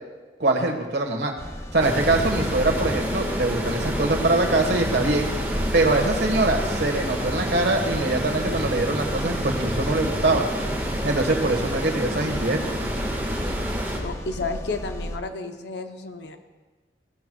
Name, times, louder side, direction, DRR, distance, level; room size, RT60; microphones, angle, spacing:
voice 1, 0.4-1.3 1.7-10.4 11.0-12.6, right 2 dB, 70° right, 3 dB, 1.5 m, -23 dB
sound 1, 1.4-15.2, equal, 15° left, 0.5 m, -34 dB
sound 2, 1.8-14.0, equal, 10° right, 1.6 m, -29 dB
voice 2, 14.0-16.4, left 3 dB, 75° left, 6 dB, 0.8 m, -32 dB
17.5 x 12.5 x 2.3 m, 1.3 s
head